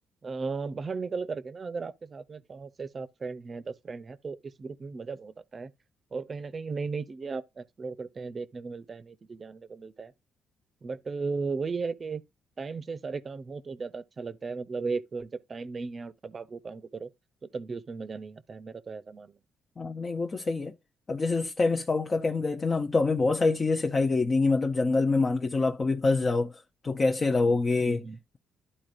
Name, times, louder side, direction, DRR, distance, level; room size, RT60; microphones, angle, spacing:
voice 1, 0.2-5.7 6.1-10.1 10.8-12.2 12.6-17.1 17.4-19.3 27.8-28.2, right 4 dB, 35° right, 0.7 m, -36 dB
voice 2, 19.8-20.7 21.1-28.1, left 3 dB, 35° left, 0.7 m, -26 dB
12.0 x 4.2 x 2.5 m
cardioid pair, 90°, 0 cm